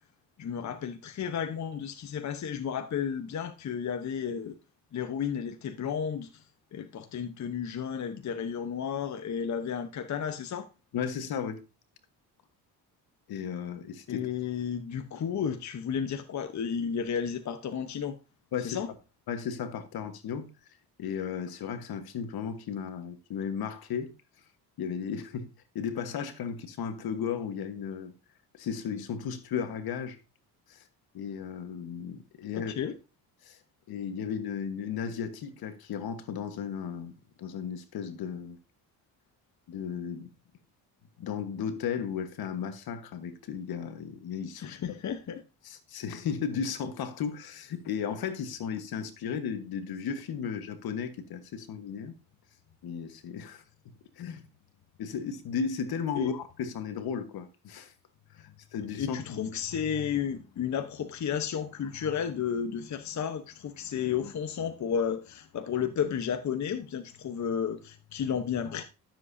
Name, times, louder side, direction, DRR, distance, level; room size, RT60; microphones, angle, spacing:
voice 1, 0.4-4.5 4.9-6.4 6.7-10.7 14.1-18.2 18.6-18.9 32.8-32.9 44.6-45.4 56.2-56.3 59.0-68.8, left 7 dB, 45° left, 1.0 m, -32 dB
voice 2, 10.9-11.6 13.3-14.3 18.5-18.8 19.3-20.5 21.0-24.1 24.8-28.1 28.5-30.2 30.7-30.8 31.1-32.9 33.4-33.6 33.9-37.1 37.4-38.6 39.7-40.3 41.2-45.0 45.6-52.1 52.8-53.6 54.2-54.4 55.0-57.9 58.3-59.5, left 7 dB, 65° left, 1.5 m, -35 dB
12.5 x 7.4 x 2.7 m
cardioid pair, 85°, 39 cm